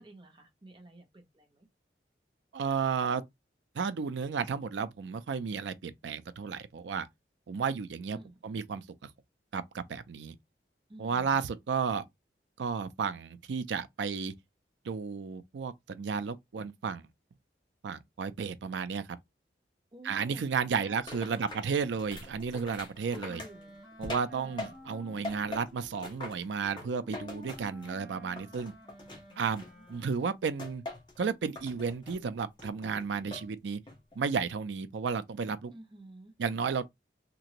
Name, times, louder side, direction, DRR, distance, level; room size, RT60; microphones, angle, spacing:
voice 1, 0.0-1.7 8.1-8.4 10.9-11.4 19.9-20.4 20.7-21.6 23.3-23.8 24.4-25.2 29.2-29.8 35.7-36.3, right 1 dB, 25° right, 0.8 m, -52 dB
voice 2, 2.5-3.2 3.7-7.1 7.5-8.2 8.4-8.8 9.5-10.4 11.0-12.0 12.6-14.3 14.8-17.0 17.8-19.1 20.0-23.4 24.0-28.7 29.4-30.8 31.2-33.8 34.2-35.7 36.4-36.8, right 5 dB, 90° right, 0.4 m, -33 dB
sound 1, 21.1-25.0 25.2-28.0 28.4-30.0 30.6-31.2 31.6-32.2 32.6-33.5 33.9-34.3, left 2 dB, 25° left, 1.0 m, -43 dB
Wind instrument woodwind instrument, 22.9-30.4, equal, ahead, 1.3 m, -53 dB
2.9 x 2.5 x 2.9 m
head